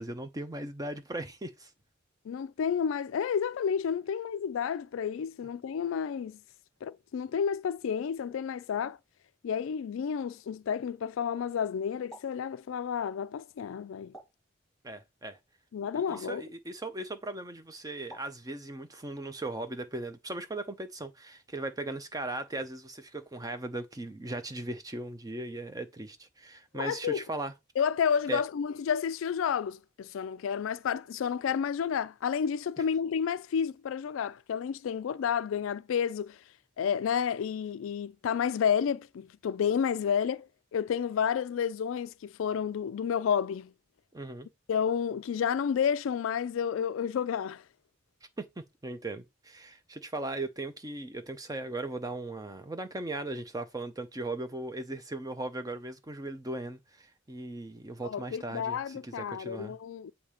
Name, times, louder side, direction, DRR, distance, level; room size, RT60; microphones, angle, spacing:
voice 1, 0.0-1.7 14.8-15.4 15.9-27.5 28.3-28.4 44.1-44.5 48.4-59.8, right 2 dB, 20° right, 0.6 m, -38 dB
voice 2, 2.3-6.4 6.8-9.0 9.4-14.1 15.7-16.4 26.7-27.2 27.8-36.4 36.8-43.7 44.7-47.6 58.0-60.1, left 7 dB, 75° left, 0.3 m, -30 dB
sound 1, 12.1-12.4 14.1-14.5 16.1-16.4 18.1-18.4, equal, ahead, 2.0 m, -49 dB
7.1 x 2.8 x 4.9 m
head